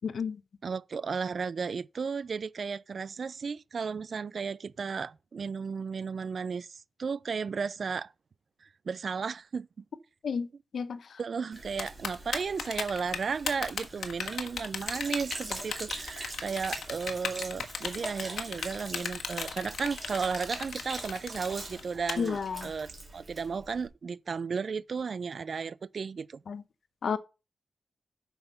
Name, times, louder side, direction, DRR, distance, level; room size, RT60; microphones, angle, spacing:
voice 1, 0.0-0.4 10.2-10.5 10.7-11.2 22.2-22.7 26.5-26.6 27.0-27.2, left 6 dB, 60° left, 0.7 m, -31 dB
voice 2, 0.6-8.1 8.9-9.8 11.2-26.4, right 5 dB, 50° right, 0.3 m, -34 dB
Sink (filling or washing), 11.5-23.9, right 2 dB, 25° right, 2.9 m, -43 dB
Typing, 11.8-22.1, left 6 dB, 85° left, 1.3 m, -35 dB
8.0 x 5.7 x 5.5 m
wide cardioid pair, 150°, 0 cm